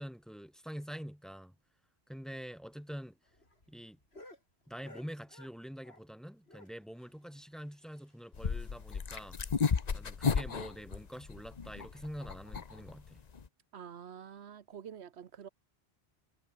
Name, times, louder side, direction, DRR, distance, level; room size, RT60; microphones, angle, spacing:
voice 1, 0.0-1.5 2.1-3.2 3.7-4.0 4.7-9.4 9.9-13.2, equal, ahead, 1.4 m, -45 dB
sound 1, 2.7-6.2 6.5-8.4 8.7-8.8 9.1-9.2 9.6-9.7 10.3-10.6 11.4-11.6, left 1 dB, 70° left, 6.8 m, -58 dB
sound 2, 8.3-13.5, left 5 dB, 40° left, 1.0 m, -33 dB
voice 2, 13.7-15.5, right 8 dB, 80° right, 1.2 m, -47 dB
omnidirectional pair, 1.1 m